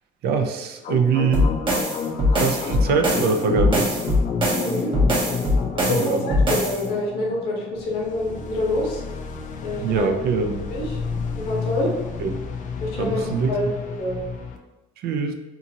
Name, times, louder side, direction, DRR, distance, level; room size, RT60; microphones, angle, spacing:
voice 1, 0.2-1.5 2.3-4.0 5.9-6.2 9.8-10.7 12.2-12.3 13.0-13.5 15.0-15.3, right 5 dB, 70° right, 5 dB, 0.4 m, -23 dB
sound 1, 0.8-14.6, left 5 dB, 50° left, 0.4 m, -31 dB
sound 2, 1.3-6.8, left 1 dB, 30° right, 0.7 m, -21 dB
voice 2, 4.5-4.9 5.7-9.0 9.6-10.0 10.7-11.0 11.4-11.9 12.8-13.7 14.0-14.2, left 1 dB, 85° left, -2 dB, 1.0 m, -26 dB
2.7 x 2.5 x 2.7 m, 1.1 s
cardioid pair, 110°, 17 cm